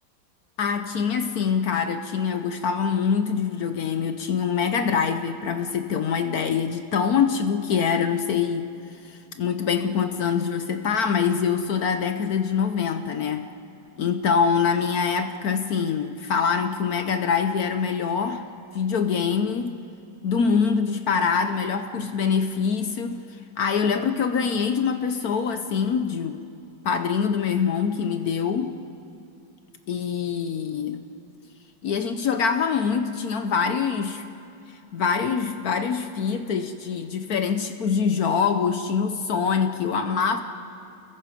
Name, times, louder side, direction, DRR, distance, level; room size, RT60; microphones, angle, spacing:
voice 1, 0.6-8.7 9.0-13.5 14.0-18.4 18.7-19.8 20.2-23.2 23.6-26.4 26.8-28.7 29.9-31.0 31.8-34.2 34.9-40.4, left 6 dB, 60° left, 8 dB, 1.0 m, -24 dB
29.5 x 21.5 x 5.1 m, 2.7 s
omnidirectional pair, 2.3 m